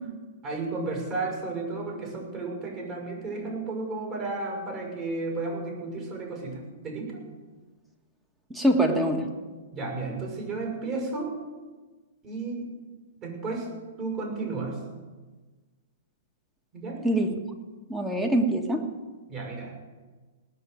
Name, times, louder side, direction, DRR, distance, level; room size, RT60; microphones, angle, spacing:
voice 1, 0.4-7.2 9.7-11.4 12.2-12.7 13.2-13.7 14.0-14.8 16.7-17.0 19.3-19.8, right 3 dB, 35° right, 0 dB, 6.1 m, -33 dB
voice 2, 8.5-9.3 17.0-17.4 17.9-18.9, right 1 dB, 5° right, 4 dB, 1.7 m, -24 dB
18.5 x 6.8 x 9.3 m, 1.3 s
hypercardioid pair, 135°, 0 cm